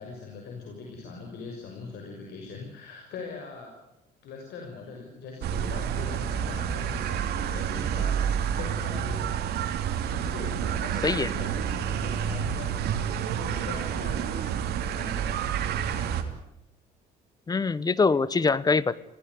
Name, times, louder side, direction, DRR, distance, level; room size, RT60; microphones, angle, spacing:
voice 1, 0.0-3.7 4.2-9.6 10.1-14.5 14.9-15.7, left 4 dB, 75° left, 1 dB, 6.3 m, -41 dB
sound 1, 5.4-16.2, right 8 dB, 70° right, 3.0 m, -29 dB
voice 2, 17.5-19.0, left 4 dB, 25° left, 19 dB, 1.1 m, -23 dB
27.0 x 17.0 x 9.6 m, 0.86 s
cardioid pair, 110°, 17 cm